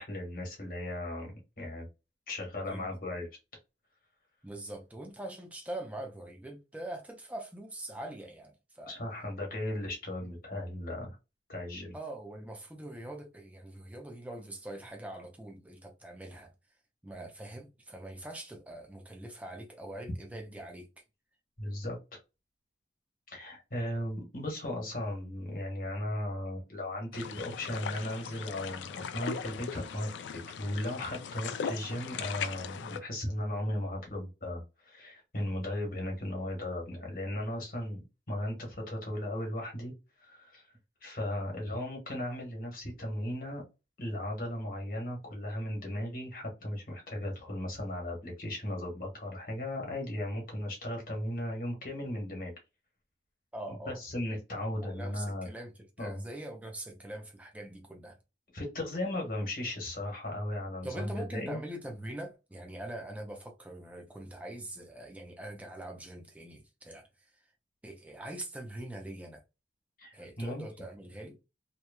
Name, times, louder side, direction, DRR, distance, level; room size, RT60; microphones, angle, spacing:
voice 1, 0.0-1.9 2.3-3.3 8.9-11.2 11.5-11.9 21.6-22.0 23.3-39.9 40.2-40.7 41.0-43.6 44.0-52.5 53.8-55.5 56.0-56.2 58.5-61.6 70.0-70.6, left 1 dB, 50° left, 1.3 m, -36 dB
voice 2, 4.4-9.0 10.2-10.3 11.9-16.5 17.0-20.9 53.5-54.0 54.8-58.2 60.8-67.1 67.8-69.4 70.1-71.4, right 1 dB, 10° right, 0.5 m, -43 dB
sound 1, 27.1-33.0, left 6 dB, 85° left, 0.3 m, -39 dB
2.9 x 2.2 x 2.2 m
head